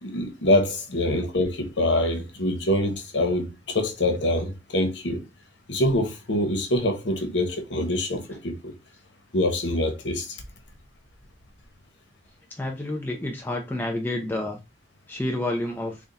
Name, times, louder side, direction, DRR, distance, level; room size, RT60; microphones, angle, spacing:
voice 1, 0.0-5.2 5.7-8.8 9.3-10.4, left 1 dB, 80° left, 1.0 m, -25 dB
voice 2, 12.5-14.6 15.1-16.0, left 1 dB, 10° left, 0.5 m, -29 dB
3.5 x 2.2 x 3.9 m
head